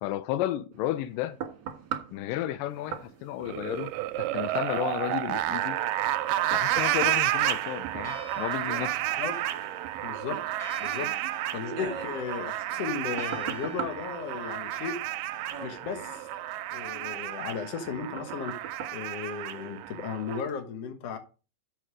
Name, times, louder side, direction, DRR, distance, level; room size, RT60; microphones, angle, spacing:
voice 1, 0.0-1.4 2.1-3.9 4.2-5.8 6.5-9.0, left 13 dB, 85° left, 2.2 m, -32 dB
sound 1, 0.7-20.0 20.5-20.6, right 8 dB, 45° right, 1.8 m, -43 dB
sound 2, 3.4-20.4, right 14 dB, 85° right, 2.2 m, -31 dB
Church bell, 8.0-16.8, equal, 25° left, 3.0 m, -49 dB
voice 2, 10.0-10.4 10.8-11.2 11.5-15.0 15.6-16.3 16.7-21.2, left 6 dB, 60° left, 1.9 m, -35 dB
7.8 x 6.4 x 4.9 m
omnidirectional pair, 4.0 m